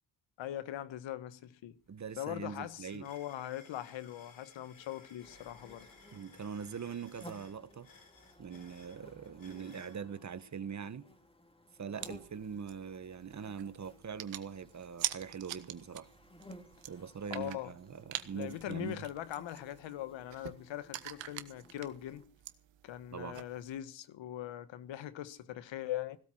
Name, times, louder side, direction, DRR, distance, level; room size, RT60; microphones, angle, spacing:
voice 1, 0.4-1.8 2.2-5.9 17.3-17.7 18.3-22.2 22.8-26.2, left 12 dB, 80° left, 1.4 m, -41 dB
sound 1, 1.4-1.5 1.8-10.0, left 4 dB, 45° left, 4.9 m, -60 dB
voice 2, 1.9-3.1 6.1-7.9 8.4-11.1 11.8-16.1 16.9-19.0 23.1-23.4, right 6 dB, 40° right, 1.4 m, -42 dB
sound 2, 5.2-22.3, left 1 dB, 10° left, 2.9 m, -58 dB
sound 3, 12.0-23.8, right 12 dB, 80° right, 1.5 m, -46 dB
17.0 x 13.0 x 6.1 m
cardioid pair, 100°, 44 cm